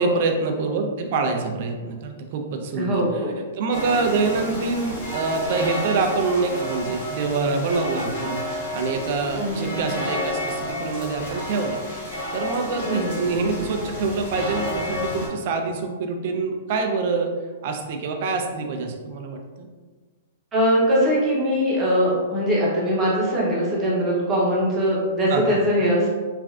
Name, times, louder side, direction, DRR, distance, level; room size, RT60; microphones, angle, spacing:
voice 1, 0.0-11.8 12.3-17.3 17.6-19.7 25.3-25.6, right 4 dB, 40° right, 4 dB, 0.3 m, -26 dB
voice 2, 2.8-3.3 9.4-9.8 12.9-13.1 20.5-26.2, equal, 15° right, -6 dB, 0.7 m, -21 dB
sound 1, 3.7-15.3, left 1 dB, 45° left, 1.3 m, -31 dB
3.1 x 2.4 x 2.3 m, 1.4 s
hypercardioid pair, 170°, 0 cm